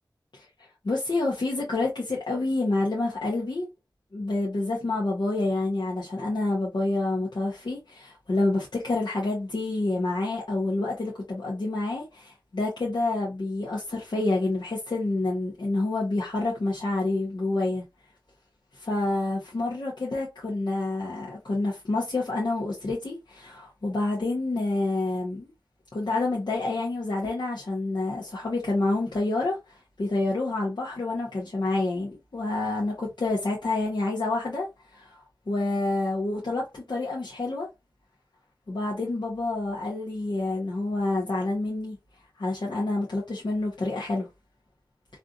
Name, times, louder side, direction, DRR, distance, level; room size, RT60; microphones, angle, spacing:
voice 1, 0.8-3.7 4.1-17.8 18.7-25.5 25.9-34.7 34.9-35.2 35.5-37.7 38.7-42.0 42.4-44.3, left 2 dB, 70° left, 1.1 m, -28 dB
3.3 x 2.5 x 2.5 m
wide cardioid pair, 65°, 8 cm